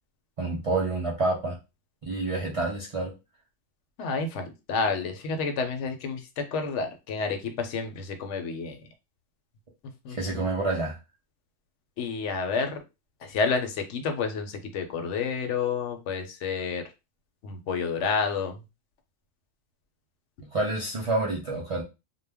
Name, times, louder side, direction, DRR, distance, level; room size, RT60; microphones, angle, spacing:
voice 1, 0.4-1.6 2.0-3.1 10.1-11.0 20.5-21.8, right 2 dB, 50° right, -3 dB, 0.4 m, -28 dB
voice 2, 4.0-6.2 6.5-8.8 10.0-10.4 12.0-12.8 13.2-16.8 17.4-18.6, left 5 dB, 70° left, 6 dB, 0.9 m, -29 dB
2.2 x 2.1 x 3.3 m, 0.26 s
omnidirectional pair, 1.3 m